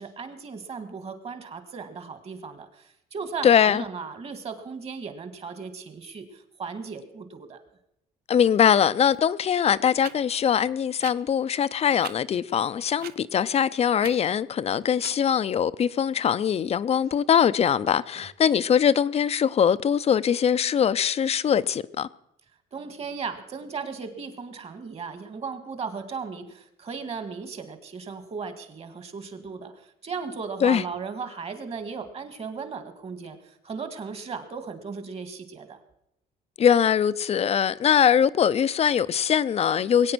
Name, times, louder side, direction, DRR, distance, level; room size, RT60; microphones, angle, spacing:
voice 1, 0.0-7.6 18.1-18.2 22.7-35.8, right 5 dB, 35° right, 1.9 m, -36 dB
voice 2, 3.4-3.8 8.3-22.1 30.6-30.8 36.6-40.1, left 8 dB, 40° left, 0.5 m, -22 dB
sound 1, 9.1-9.2 10.0-10.1 11.0-11.1 12.0-12.1 13.0-13.2 14.0-14.2 15.0-15.1, right 11 dB, 65° right, 0.7 m, -39 dB
21.0 x 8.9 x 6.1 m
cardioid pair, 110°, 17 cm